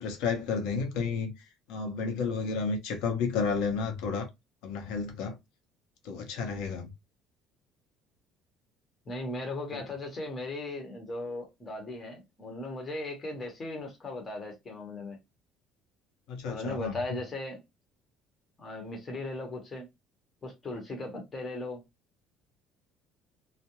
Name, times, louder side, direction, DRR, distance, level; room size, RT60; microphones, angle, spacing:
voice 1, 0.0-1.3 1.7-4.3 4.6-5.4 6.0-6.9 16.3-17.0, left 5 dB, 85° left, 0.8 m, -31 dB
voice 2, 9.0-15.2 16.4-17.6 18.6-19.9 20.4-21.8, left 2 dB, 25° left, 1.0 m, -37 dB
2.4 x 2.1 x 2.9 m
cardioid pair, 140°, 0 cm